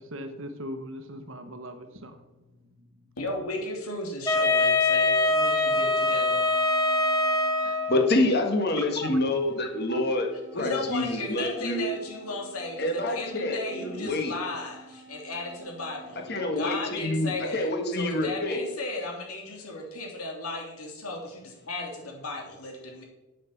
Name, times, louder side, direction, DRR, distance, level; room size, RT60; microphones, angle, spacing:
voice 1, 0.0-2.2 9.0-9.1 9.9-10.0, right 1 dB, 65° right, 7 dB, 1.1 m, -39 dB
voice 2, 3.2-6.5 10.5-16.2 16.6-23.0, left 2 dB, 85° left, 1 dB, 2.7 m, -35 dB
Wind instrument woodwind instrument, 4.3-8.1, left 2 dB, 15° left, 0.9 m, -23 dB
sound 1, 6.2-16.6, right 2 dB, 25° right, 1.8 m, -50 dB
voice 3, 7.6-11.9 12.8-14.3 16.3-18.6, left 2 dB, 45° left, 4 dB, 1.7 m, -27 dB
8.3 x 8.2 x 7.0 m, 1.0 s
head